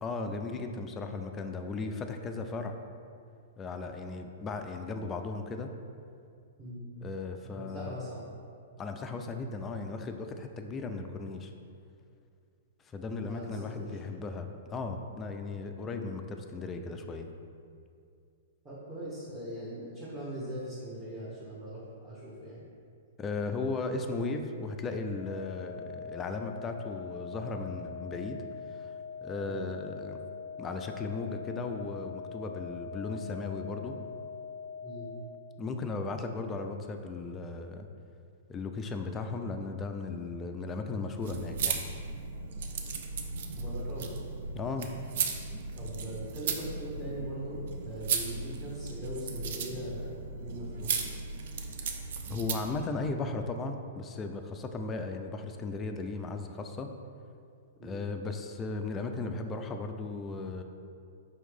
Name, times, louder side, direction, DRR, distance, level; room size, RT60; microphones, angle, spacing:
voice 1, 0.0-2.8 3.6-5.8 7.0-7.9 8.8-11.5 12.8-17.3 23.2-28.9 29.2-30.2 30.6-34.0 35.6-37.9 38.5-41.9 44.5-44.9 52.3-56.9 57.8-60.6, left 3 dB, 20° left, 6 dB, 0.3 m, -36 dB
voice 2, 7.5-8.2 13.2-14.0 18.6-22.6 29.4-29.6 34.8-35.1 43.6-44.2 44.4-44.5 45.7-51.0 57.8-58.0, equal, 20° right, -12 dB, 1.0 m, -41 dB
sound 1, 25.1-35.2, left 6 dB, 70° right, 1.1 m, -43 dB
sound 2, 41.2-52.8, right 5 dB, 55° right, 0.4 m, -36 dB
4.8 x 3.1 x 3.5 m, 2.4 s
figure-of-eight pair, 110°, 0 cm